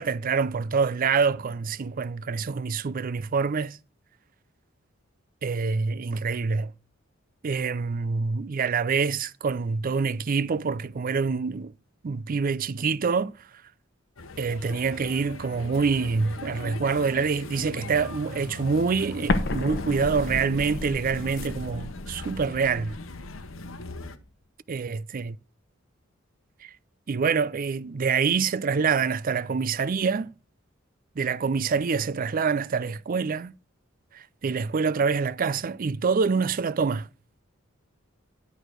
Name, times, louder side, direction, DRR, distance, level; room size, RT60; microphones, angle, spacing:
voice 1, 0.0-3.8 5.4-6.7 7.4-11.7 12.0-13.3 14.4-23.0 24.7-25.3 26.6-26.7 27.1-30.3 31.2-33.5 34.1-37.1, right 5 dB, 45° right, 0.4 m, -26 dB
sound 1, 14.2-24.2, left 3 dB, 90° left, 0.9 m, -40 dB
Explosion, 19.3-24.0, left 2 dB, 60° left, 1.0 m, -32 dB
11.0 x 4.9 x 6.1 m
head